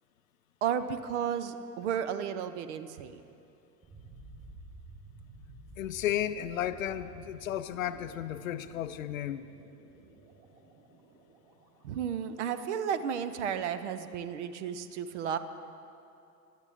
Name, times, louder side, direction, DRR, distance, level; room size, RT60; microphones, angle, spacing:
voice 1, 0.6-3.2 11.8-15.4, right 8 dB, 45° right, 12 dB, 0.7 m, -33 dB
sound 1, 3.8-12.7, right 2 dB, 25° right, 3.7 m, -53 dB
voice 2, 5.8-9.5, left 11 dB, 55° left, 13 dB, 0.6 m, -33 dB
20.0 x 12.0 x 3.5 m, 2.7 s
figure-of-eight pair, 95°, 49 cm